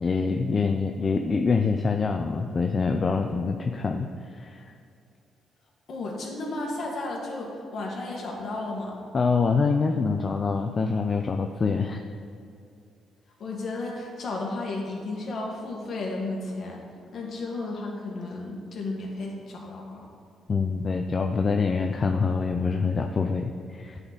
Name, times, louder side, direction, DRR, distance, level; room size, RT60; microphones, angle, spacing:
voice 1, 0.0-4.6 9.1-12.0 20.5-24.0, left 4 dB, 35° left, 5 dB, 0.4 m, -25 dB
voice 2, 5.9-9.0 13.4-16.8 17.1-20.1, left 2 dB, 55° left, -1 dB, 1.8 m, -33 dB
9.7 x 4.1 x 6.2 m, 2.5 s
cardioid pair, 90°, 0 cm